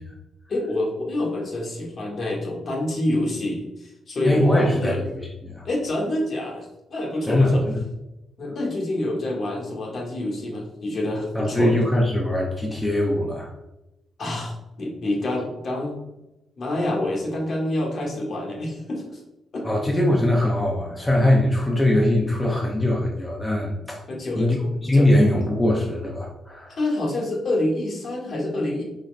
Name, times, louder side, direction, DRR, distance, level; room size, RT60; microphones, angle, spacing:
voice 1, 0.5-5.0 5.6-7.6 8.4-11.8 14.2-16.0 16.6-19.2 19.5-19.6 24.1-25.1 26.7-28.8, left 1 dB, 50° left, -2 dB, 1.4 m, -27 dB
voice 2, 4.2-5.7 7.2-7.8 11.3-13.5 19.6-24.0 24.3-24.6 24.8-26.8, left 1 dB, 15° left, -2 dB, 0.7 m, -21 dB
4.0 x 3.6 x 3.2 m, 0.96 s
cardioid pair, 105°, 0 cm